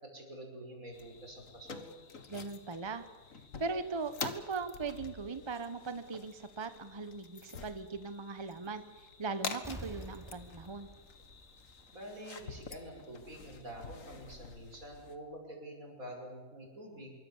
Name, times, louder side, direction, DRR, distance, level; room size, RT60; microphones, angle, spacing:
voice 1, 0.0-1.9 11.9-17.1, right 1 dB, 80° right, 1 dB, 6.1 m, -47 dB
sound 1, 0.9-15.1, left 5 dB, 70° left, 2.0 m, -47 dB
voice 2, 2.3-3.0 3.6-8.8 9.2-10.9, right 4 dB, 20° right, 10 dB, 1.1 m, -39 dB
Explosion, 9.6-12.2 12.6-12.7, right 1 dB, ahead, 2.8 m, -49 dB
25.5 x 23.5 x 7.3 m, 1.3 s
omnidirectional pair, 1.4 m